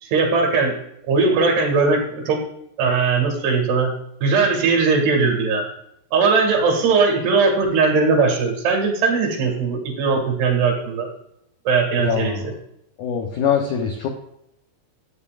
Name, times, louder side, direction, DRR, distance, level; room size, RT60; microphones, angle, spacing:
voice 1, 0.0-0.7 1.1-2.4 2.8-3.9 4.2-5.6 6.1-11.1 11.7-12.5, right 4 dB, 75° right, 2 dB, 4.0 m, -19 dB
voice 2, 12.0-12.5 13.0-14.1, left 7 dB, 80° left, 2 dB, 1.8 m, -23 dB
12.5 x 8.4 x 2.5 m, 0.78 s
omnidirectional pair, 4.7 m